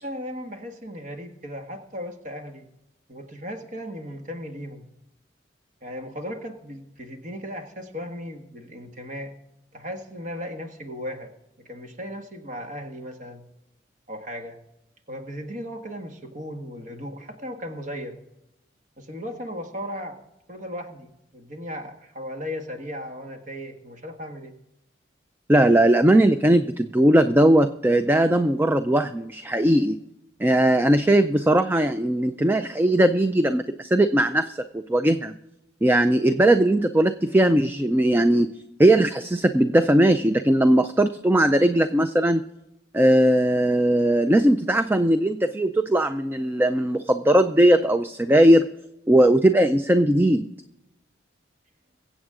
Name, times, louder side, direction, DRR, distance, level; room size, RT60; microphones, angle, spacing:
voice 1, 0.0-2.7 3.1-4.9 5.8-9.3 9.7-11.3 11.6-13.4 14.1-14.6 15.1-18.2 19.0-20.2 20.5-24.5, equal, 40° right, 4 dB, 1.6 m, -36 dB
voice 2, 25.5-30.0 30.4-34.6 34.9-35.3 35.8-38.5 38.8-42.4 42.9-48.7 49.1-50.5, right 1 dB, 10° right, 10 dB, 0.4 m, -19 dB
23.0 x 8.0 x 3.7 m, 0.89 s
head